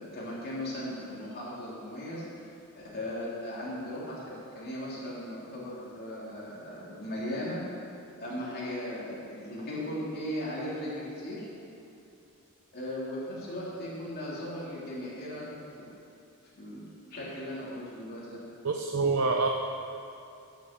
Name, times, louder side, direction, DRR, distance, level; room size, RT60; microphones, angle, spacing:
voice 1, 0.0-2.2 2.7-7.6 8.2-11.5 12.7-15.9 16.6-16.8 17.1-18.4, left 1 dB, 45° left, -7 dB, 3.2 m, -37 dB
voice 2, 18.6-19.5, right 4 dB, 70° right, 2 dB, 0.7 m, -26 dB
11.0 x 7.0 x 7.6 m, 2.7 s
head